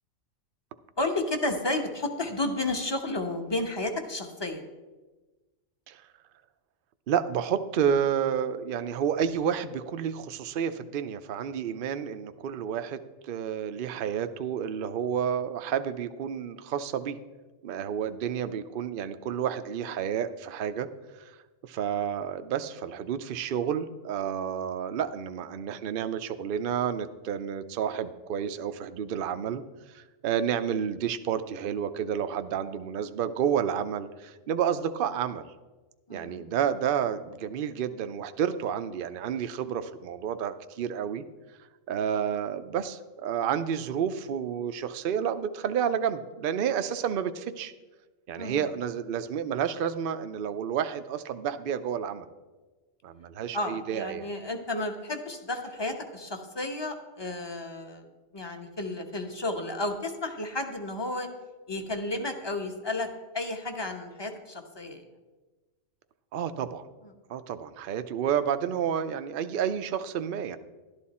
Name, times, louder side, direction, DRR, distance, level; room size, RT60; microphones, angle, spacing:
voice 1, 1.0-4.6 36.1-36.4 48.3-48.7 53.5-58.1 58.3-61.3 61.7-63.1 63.3-65.0, left 2 dB, 20° left, 5 dB, 1.0 m, -32 dB
voice 2, 7.1-17.2 17.6-20.9 21.6-29.6 29.9-35.5 36.1-41.2 41.9-47.7 48.3-52.3 53.0-54.3 66.3-66.9 67.3-70.6, right 8 dB, 55° right, 10 dB, 0.7 m, -30 dB
12.0 x 11.5 x 4.2 m, 1.2 s
omnidirectional pair, 1.3 m